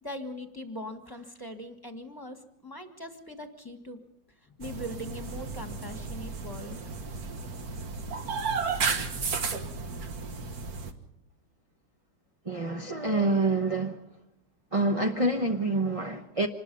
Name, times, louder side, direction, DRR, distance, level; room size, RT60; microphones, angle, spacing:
voice 1, 0.0-4.0 4.4-6.8, equal, 10° left, 6 dB, 1.5 m, -41 dB
sound 1, 4.6-10.9, right 5 dB, 50° right, 1.8 m, -33 dB
voice 2, 12.4-14.0 14.7-16.5, right 2 dB, 25° right, 3 dB, 0.7 m, -27 dB
26.0 x 20.5 x 5.5 m, 0.80 s
omnidirectional pair, 2.1 m